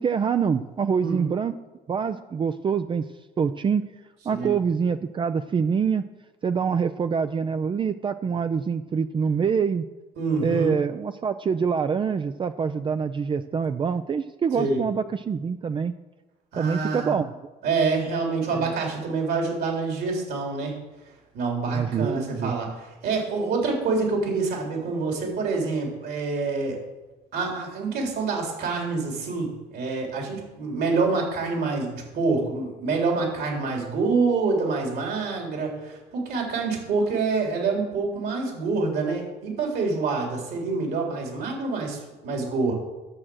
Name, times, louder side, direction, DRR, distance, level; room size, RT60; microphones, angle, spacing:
voice 1, 0.0-1.5 1.9-3.0 3.4-3.8 4.3-6.0 6.4-9.8 10.4-15.9 16.5-17.3 18.5-18.7 21.7-22.5, right 6 dB, 30° right, 9 dB, 0.5 m, -25 dB
voice 2, 10.2-10.7 14.5-14.8 16.5-17.2 17.6-20.7 21.3-26.8 27.3-42.7, right 4 dB, 70° right, 0 dB, 3.7 m, -26 dB
11.0 x 7.4 x 6.4 m, 1.1 s
cardioid pair, 110°, 17 cm